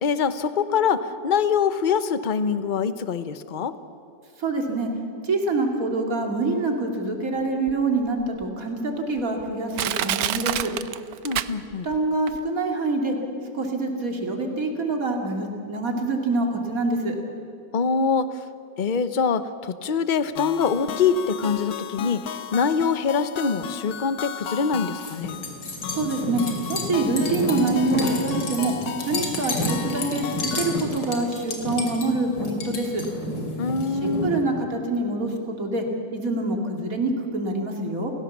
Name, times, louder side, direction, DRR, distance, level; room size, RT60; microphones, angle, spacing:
voice 1, 0.0-3.8 11.2-11.9 17.7-18.5 18.8-25.4 33.6-34.3, left 6 dB, 40° left, 12 dB, 0.7 m, -24 dB
voice 2, 4.4-4.9 5.2-10.7 11.8-13.2 13.5-17.2 25.9-26.4 26.7-28.7 29.1-33.1 34.0-35.9 36.1-38.1, right 2 dB, 50° right, 2 dB, 3.1 m, -25 dB
Crushing, 7.7-7.8 8.4-8.5 9.2-9.3 9.8-12.0 12.3-12.4, right 11 dB, 65° right, 1.1 m, -27 dB
sound 1, 20.4-30.8, left 9 dB, 65° left, 1.3 m, -35 dB
sound 2, 25.0-34.4, left 1 dB, 80° left, 3.5 m, -30 dB
29.5 x 16.5 x 7.3 m, 2.7 s
omnidirectional pair, 1.9 m